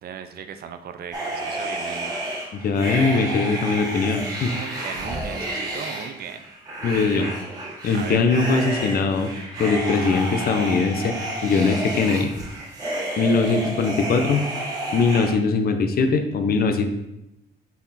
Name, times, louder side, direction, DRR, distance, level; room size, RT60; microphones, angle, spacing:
voice 1, 0.0-2.1 4.4-6.4 7.9-8.2, right 7 dB, 60° right, 8 dB, 0.6 m, -37 dB
sound 1, 1.1-15.3, right 1 dB, 20° right, 2.2 m, -30 dB
voice 2, 2.5-4.5 6.8-7.3 7.8-9.3 9.6-11.1 11.4-12.3 13.2-14.5 14.9-16.9, left 4 dB, 55° left, 7 dB, 0.7 m, -21 dB
6.1 x 4.3 x 4.1 m, 0.88 s
cardioid pair, 105°, 18 cm